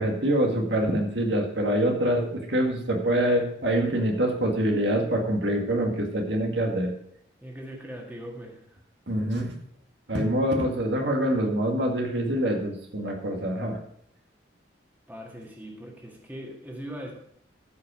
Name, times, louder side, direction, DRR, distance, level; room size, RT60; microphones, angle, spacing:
voice 1, 0.0-6.9 9.1-9.5 10.1-13.8, right 1 dB, 70° right, 1 dB, 1.8 m, -25 dB
voice 2, 7.4-8.8 15.1-17.1, equal, 10° right, -1 dB, 1.7 m, -40 dB
14.0 x 5.4 x 5.0 m, 0.72 s
head